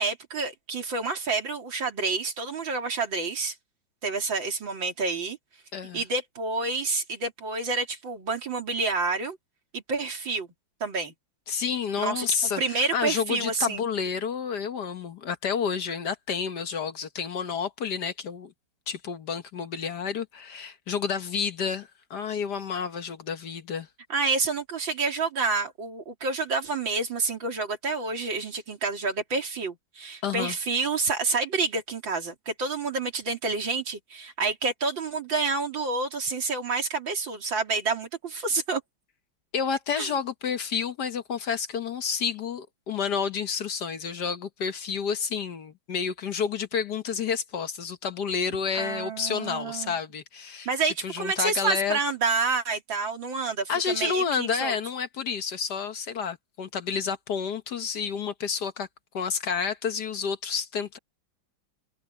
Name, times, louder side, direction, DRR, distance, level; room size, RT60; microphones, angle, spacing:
voice 1, 0.0-3.6 4.0-5.4 5.9-9.4 9.7-10.5 10.8-11.1 12.0-13.8 24.1-38.8 40.0-40.1 48.8-50.0 50.7-54.8, right 4 dB, 70° right, 3.7 m, -28 dB
voice 2, 5.7-6.0 11.5-18.5 18.9-23.9 30.2-30.5 39.5-50.7 51.0-52.0 53.7-58.9 59.1-61.0, left 6 dB, 60° left, 1.6 m, -30 dB
omnidirectional pair, 2.2 m